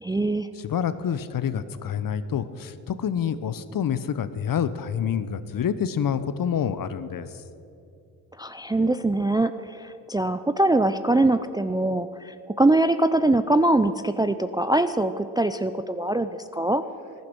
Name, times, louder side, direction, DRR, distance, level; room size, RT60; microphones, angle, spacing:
voice 1, 0.0-0.5 8.4-16.8, right 2 dB, 10° right, 10 dB, 0.4 m, -23 dB
voice 2, 0.6-7.3, left 8 dB, 45° left, 13 dB, 0.9 m, -27 dB
15.0 x 10.5 x 6.1 m, 2.7 s
hypercardioid pair, 50°, 47 cm